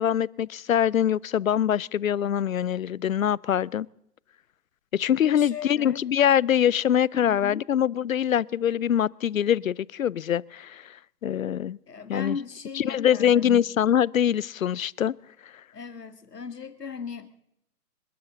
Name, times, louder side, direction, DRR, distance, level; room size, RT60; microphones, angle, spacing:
voice 1, 0.0-3.9 4.9-11.0 11.2-11.8 12.1-12.4 12.7-15.1, left 9 dB, 60° left, 0.5 m, -24 dB
voice 2, 5.2-6.0 7.1-7.6 11.9-13.7 15.7-17.4, left 6 dB, 85° left, 2.0 m, -37 dB
26.5 x 12.0 x 3.9 m
figure-of-eight pair, 140°, 47 cm